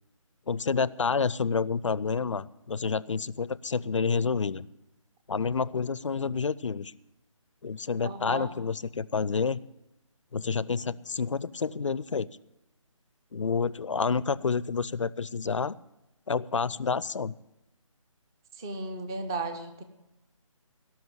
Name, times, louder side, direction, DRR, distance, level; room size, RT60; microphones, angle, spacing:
voice 1, 0.5-4.7 5.3-6.9 7.6-9.6 10.3-12.3 13.3-15.7 16.3-17.3, left 5 dB, 65° left, 20 dB, 0.5 m, -29 dB
voice 2, 8.0-8.5 18.6-19.8, right 3 dB, 10° right, 9 dB, 0.4 m, -35 dB
18.0 x 6.0 x 8.8 m, 0.93 s
figure-of-eight pair, 150°, 17 cm